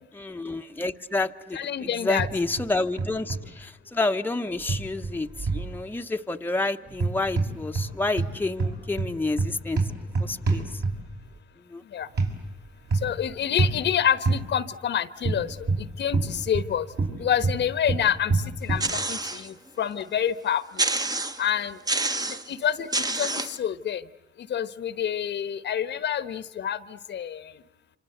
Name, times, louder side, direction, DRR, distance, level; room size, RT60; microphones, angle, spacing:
voice 1, 0.1-9.8 10.2-10.8 11.7-11.8, left 2 dB, 10° left, 5 dB, 1.0 m, -29 dB
voice 2, 1.5-2.3 11.9-12.1 13.0-15.5 16.0-16.9 17.2-18.3 18.6-18.8 19.1-20.9 21.4-21.8 22.5-24.0 24.5-26.8 27.1-27.4, left 9 dB, 65° left, 14 dB, 1.1 m, -27 dB
sound 1, 2.2-2.7 3.0-3.4 4.7-5.7 6.9-7.9 8.2-11.2 12.2-12.3 12.9-13.2 13.6-13.8 14.3-14.4 15.2-16.7 17.0-18.9, right 3 dB, 55° right, 6.1 m, -26 dB
sound 2, 18.8-19.5 20.0-20.1 20.8-21.5 21.9-22.5 22.9-23.6, right 2 dB, 20° right, 1.1 m, -27 dB
28.0 x 26.0 x 7.9 m, 0.93 s
cardioid pair, 90°, 20 cm